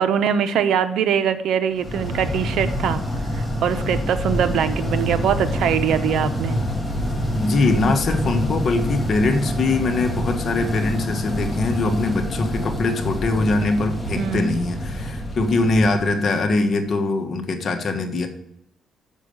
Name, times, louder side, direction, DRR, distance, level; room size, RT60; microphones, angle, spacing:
voice 1, 0.0-3.0 3.3-6.6 14.2-14.5, right 8 dB, 75° right, 9 dB, 0.8 m, -22 dB
sound 1, 1.8-16.8, equal, 10° left, 1.7 m, -26 dB
voice 2, 7.3-18.3, left 3 dB, 50° left, 5 dB, 1.4 m, -22 dB
7.3 x 6.5 x 6.8 m, 0.81 s
cardioid pair, 90°, 0 cm